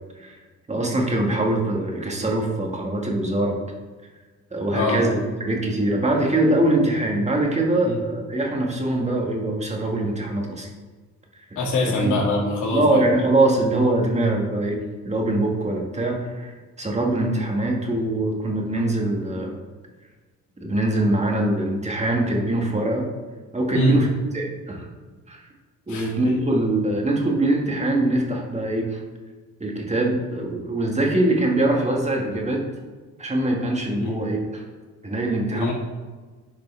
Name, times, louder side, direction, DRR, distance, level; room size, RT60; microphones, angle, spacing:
voice 1, 0.7-3.6 4.5-10.7 12.0-12.1 12.7-19.5 20.6-23.1 23.5-24.1 24.3-24.9 25.3-25.4 25.9-29.0 29.6-32.6 33.2-34.6 35.0-35.7, right 1 dB, 20° right, 0 dB, 1.9 m, -23 dB
voice 2, 4.7-5.0 7.8-8.0 11.6-13.0 23.7-24.0 25.9-26.3 34.0-34.1 35.5-35.7, left 1 dB, 80° left, -3 dB, 2.5 m, -23 dB
11.0 x 5.1 x 3.4 m, 1.4 s
cardioid pair, 90°, 30 cm